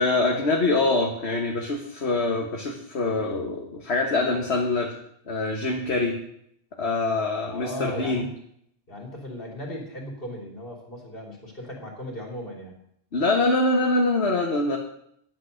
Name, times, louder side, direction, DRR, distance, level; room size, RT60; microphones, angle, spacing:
voice 1, 0.0-4.9 5.3-6.1 6.8-8.3 13.1-14.8, left 2 dB, 70° left, 1 dB, 1.6 m, -24 dB
voice 2, 7.5-8.2 8.9-12.8, left 1 dB, 55° left, 0 dB, 3.3 m, -37 dB
11.5 x 8.6 x 6.4 m, 0.71 s
omnidirectional pair, 1.1 m